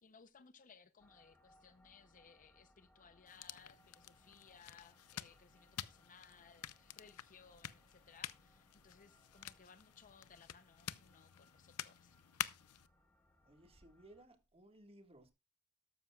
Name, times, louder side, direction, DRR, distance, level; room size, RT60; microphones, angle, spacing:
voice 1, 0.0-12.5, left 6 dB, 35° left, 0.6 m, -63 dB
sound 1, 1.0-14.3, left 1 dB, 5° left, 1.7 m, -70 dB
sound 2, 3.3-12.9, left 11 dB, 80° left, 0.6 m, -49 dB
voice 2, 13.4-15.3, right 1 dB, 25° right, 1.7 m, -61 dB
13.0 x 12.0 x 2.3 m
head